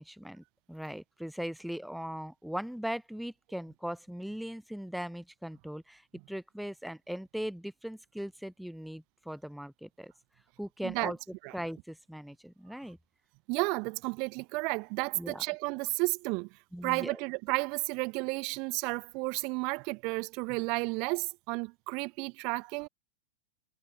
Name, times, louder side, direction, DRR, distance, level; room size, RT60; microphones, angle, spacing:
voice 1, 0.0-6.0 6.3-10.1 10.6-11.2 11.5-13.0 15.1-15.4 16.7-17.2, equal, ahead, 0.6 m, -39 dB
voice 2, 13.5-16.5 16.8-22.9, right 30 dB, 45° right, 0.7 m, -32 dB
figure-of-eight pair, 90°, 0 cm